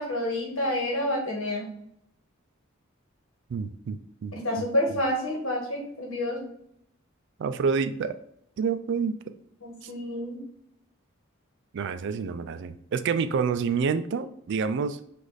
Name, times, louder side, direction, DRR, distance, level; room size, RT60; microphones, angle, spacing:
voice 1, 0.0-1.7 4.3-6.4 9.6-10.4, left 1 dB, 75° left, -1 dB, 1.3 m, -28 dB
voice 2, 3.5-4.3 7.4-8.2 8.6-9.2 9.8-9.9 11.7-15.0, right 5 dB, 60° right, 11 dB, 0.3 m, -28 dB
4.9 x 2.5 x 4.0 m, 0.70 s
head